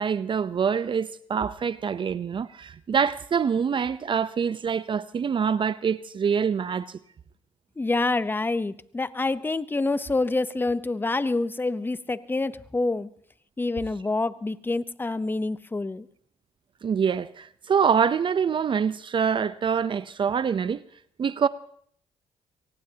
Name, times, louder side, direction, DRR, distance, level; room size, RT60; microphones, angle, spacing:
voice 1, 0.0-7.0 16.8-20.8 21.2-21.5, right 7 dB, 45° right, 0.6 m, -25 dB
voice 2, 7.8-13.1 13.6-16.1, left 2 dB, 15° left, 0.8 m, -27 dB
23.5 x 18.5 x 2.9 m
supercardioid pair, 70°, 12 cm